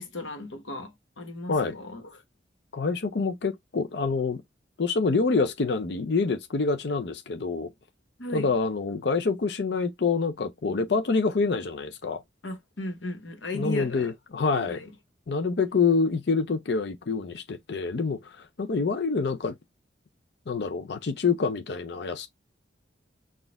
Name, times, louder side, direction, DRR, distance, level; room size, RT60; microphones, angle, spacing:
voice 1, 0.0-2.2 8.2-8.5 12.4-14.1 14.7-14.9, left 2 dB, 90° left, 1.2 m, -36 dB
voice 2, 2.7-4.4 4.8-7.7 8.3-12.2 13.5-14.8 15.3-19.5 20.5-22.3, left 4 dB, 65° left, 0.5 m, -26 dB
4.2 x 2.4 x 3.4 m
head